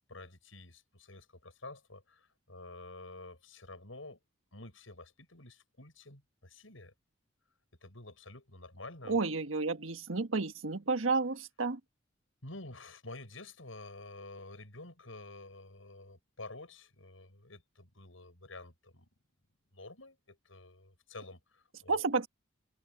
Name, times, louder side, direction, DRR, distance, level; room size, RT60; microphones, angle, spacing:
voice 1, 0.0-4.2 4.5-6.9 7.8-9.2 12.4-19.1 19.7-22.0, left 2 dB, 80° left, 7.9 m, -49 dB
voice 2, 9.1-11.8 21.9-22.3, right 3 dB, 85° right, 1.5 m, -31 dB
head